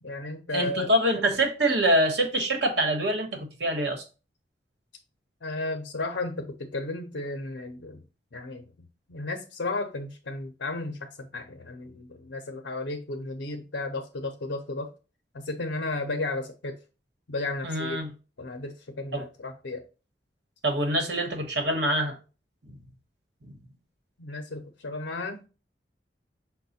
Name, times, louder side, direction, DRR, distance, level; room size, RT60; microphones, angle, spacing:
voice 1, 0.0-0.9 5.4-8.0 8.3-14.9 15.3-16.8 17.3-18.0 18.4-19.8 24.2-25.4, left 2 dB, 80° left, 0.6 m, -34 dB
voice 2, 0.5-4.0 17.6-18.1 19.1-19.2 20.6-22.2 23.4-23.5, right 1 dB, 70° right, 1.2 m, -25 dB
5.4 x 2.2 x 4.1 m
head